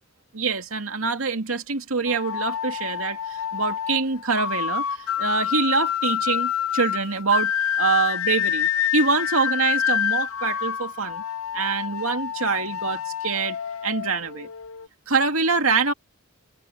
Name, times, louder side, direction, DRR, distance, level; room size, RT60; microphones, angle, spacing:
voice 1, 0.3-11.2 11.5-13.6 13.8-14.5 15.1-15.9, right 4 dB, 90° right, 2.3 m, -25 dB
sound 1, 2.1-14.9, left 9 dB, 85° left, 0.5 m, -27 dB
open air
head